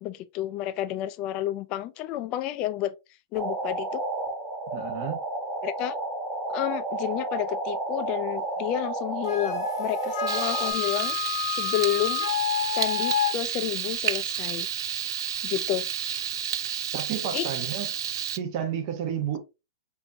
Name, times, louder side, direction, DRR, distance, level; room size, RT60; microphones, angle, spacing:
voice 1, 0.0-2.9 3.3-4.0 5.6-6.0 6.5-12.3 12.7-14.7 15.4-15.9 17.3-17.5, left 13 dB, 40° left, 0.4 m, -30 dB
sound 1, 3.3-10.7, right 2 dB, 15° right, 1.4 m, -31 dB
voice 2, 4.7-5.2 16.9-17.9 18.3-19.4, right 9 dB, 50° right, 1.0 m, -31 dB
Wind instrument woodwind instrument, 9.3-13.3, left 9 dB, 70° left, 0.9 m, -29 dB
Frying (food), 10.3-18.4, right 9 dB, 75° right, 0.4 m, -31 dB
4.4 x 2.7 x 2.7 m
hypercardioid pair, 130°, 2 cm